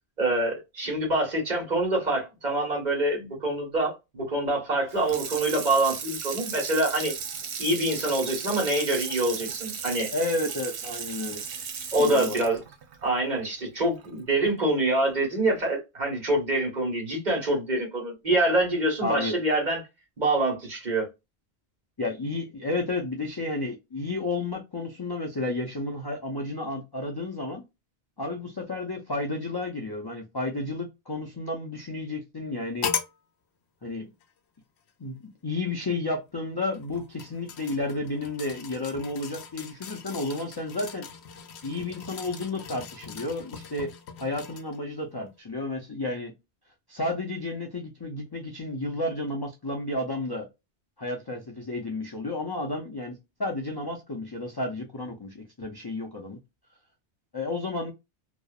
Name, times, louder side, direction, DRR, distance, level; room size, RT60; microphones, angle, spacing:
voice 1, 0.2-7.1 7.6-10.1 11.9-12.6 13.0-19.8 20.2-21.1, right 1 dB, 45° right, 1.2 m, -25 dB
Water tap faucet / Sink (filling or washing), 4.9-14.1 14.5-14.6, right 6 dB, 85° right, 0.9 m, -36 dB
voice 2, 10.1-11.4 12.0-12.4 19.0-19.4 22.0-27.6 28.2-32.9 33.8-34.1 35.0-41.1 41.6-43.9 44.2-46.3 46.9-50.5 51.0-56.4 57.3-57.9, left 2 dB, 40° left, 0.3 m, -32 dB
sound 1, 32.8-33.2 34.2-34.3 36.7-44.8 45.3-45.4, left 7 dB, 80° left, 0.8 m, -38 dB
2.7 x 2.0 x 2.3 m
omnidirectional pair, 1.1 m